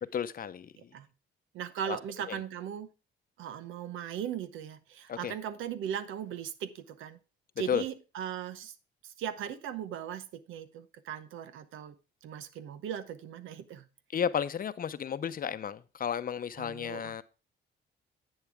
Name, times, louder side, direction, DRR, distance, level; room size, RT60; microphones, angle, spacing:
voice 1, 0.1-0.7 1.8-2.0 2.3-2.4 5.1-5.3 7.7-7.8 14.1-17.2, left 8 dB, 45° left, 0.7 m, -33 dB
voice 2, 0.8-1.1 1.5-2.9 3.4-7.2 7.6-8.7 9.0-11.9 12.2-13.9 16.6-17.2, right 9 dB, 85° right, 0.9 m, -38 dB
10.5 x 8.1 x 3.5 m
cardioid pair, 90°, 20 cm